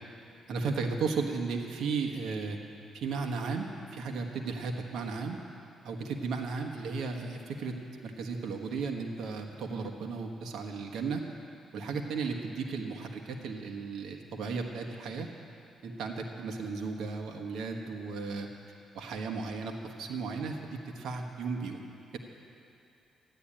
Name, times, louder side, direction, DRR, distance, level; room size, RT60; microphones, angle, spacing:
voice 1, 0.5-2.6 2.9-5.4 5.8-7.7 8.0-11.2 11.7-15.3 15.8-18.5 18.9-21.8, right 4 dB, 75° right, 3 dB, 1.3 m, -35 dB
14.0 x 10.0 x 8.7 m, 2.7 s
cardioid pair, 90°, 0 cm